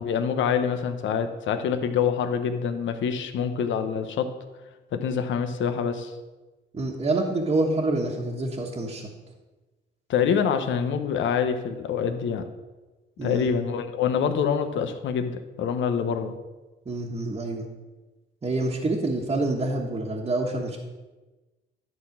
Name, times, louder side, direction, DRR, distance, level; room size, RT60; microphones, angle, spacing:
voice 1, 0.0-4.3 4.9-6.1 10.1-12.4 13.2-16.3, left 7 dB, 70° left, 8 dB, 0.9 m, -26 dB
voice 2, 6.7-9.0 13.2-13.5 16.8-17.7 18.4-20.8, right 2 dB, 30° right, -3 dB, 1.3 m, -27 dB
11.0 x 4.1 x 7.3 m, 1.2 s
cardioid pair, 90°, 20 cm